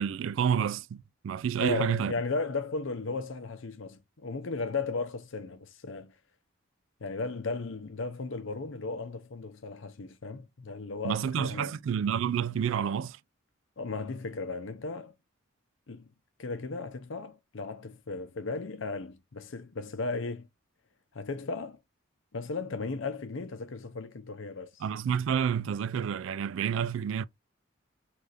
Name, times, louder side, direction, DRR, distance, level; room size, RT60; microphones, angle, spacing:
voice 1, 0.0-2.1 11.0-13.2 24.8-27.2, right 8 dB, 70° right, 0.3 m, -29 dB
voice 2, 1.6-6.1 7.0-11.8 13.8-15.1 15.9-16.1 16.4-20.5 21.1-21.8 22.3-24.8, left 3 dB, 70° left, 0.7 m, -35 dB
4.9 x 3.4 x 2.5 m
head